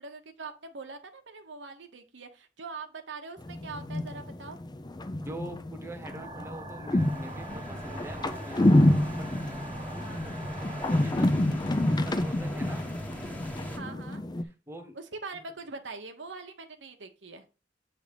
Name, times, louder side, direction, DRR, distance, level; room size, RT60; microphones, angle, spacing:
voice 1, 0.0-4.6 8.3-8.6 10.0-10.2 13.8-14.2 14.9-17.4, right 4 dB, 90° right, 6 dB, 1.0 m, -43 dB
sound 1, 3.4-14.4, left 1 dB, 25° left, 0.5 m, -28 dB
voice 2, 5.2-8.9 9.2-9.4 10.5-11.3 12.0-12.9 14.7-15.0, right 1 dB, 15° right, 3 dB, 1.1 m, -44 dB
sound 2, 6.1-11.1, right 2 dB, 30° right, 1.0 m, -44 dB
sound 3, 7.0-13.8, equal, 10° left, 1.2 m, -42 dB
8.0 x 3.4 x 5.2 m, 0.33 s
head